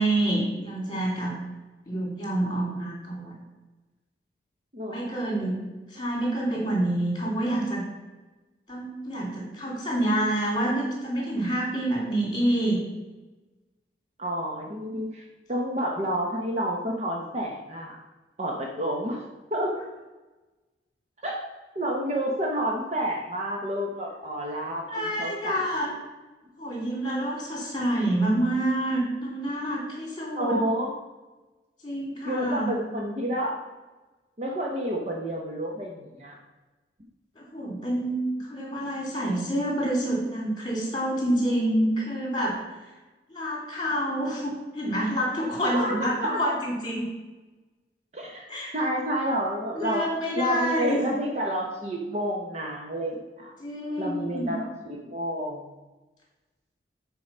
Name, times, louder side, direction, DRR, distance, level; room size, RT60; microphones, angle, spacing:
voice 1, 0.0-1.3 1.9-3.4 4.9-5.6 5.9-7.8 8.7-12.8 24.9-25.9 26.6-30.6 31.8-32.7 37.4-42.8 43.3-47.1 48.5-48.7 49.7-51.1 53.6-54.5, right 1 dB, 25° left, -1 dB, 2.7 m, -27 dB
voice 2, 4.7-5.2 14.2-18.0 18.4-19.2 19.5-19.7 21.2-21.4 21.7-25.6 30.4-30.9 32.3-33.6 34.4-36.4 45.6-46.4 48.1-48.4 48.7-50.0 50.4-53.5 54.0-55.7, equal, 40° right, -1 dB, 0.9 m, -29 dB
8.4 x 4.7 x 5.5 m, 1.2 s
head